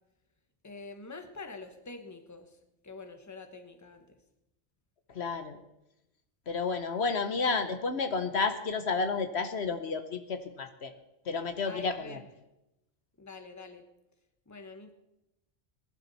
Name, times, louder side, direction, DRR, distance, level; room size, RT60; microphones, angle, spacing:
voice 1, 0.6-2.6 2.8-4.2 11.6-12.3 13.2-13.9 14.5-14.9, left 3 dB, 15° left, 7 dB, 1.2 m, -46 dB
voice 2, 5.1-5.6 6.5-10.9 11.3-12.2, left 4 dB, 65° left, 8 dB, 1.2 m, -31 dB
19.5 x 11.5 x 4.2 m, 0.90 s
omnidirectional pair, 1.2 m